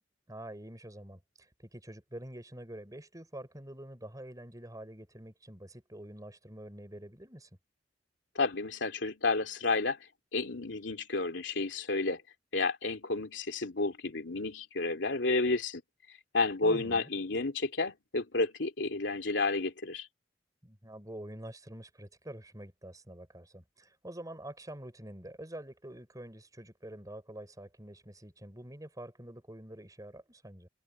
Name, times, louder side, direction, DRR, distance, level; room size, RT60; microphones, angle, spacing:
voice 1, 0.3-7.5 16.6-17.1 20.6-30.7, right 1 dB, 20° right, 5.8 m, -46 dB
voice 2, 8.3-10.0 10.3-12.2 12.5-15.8 16.3-20.1, left 3 dB, 80° left, 2.6 m, -31 dB
head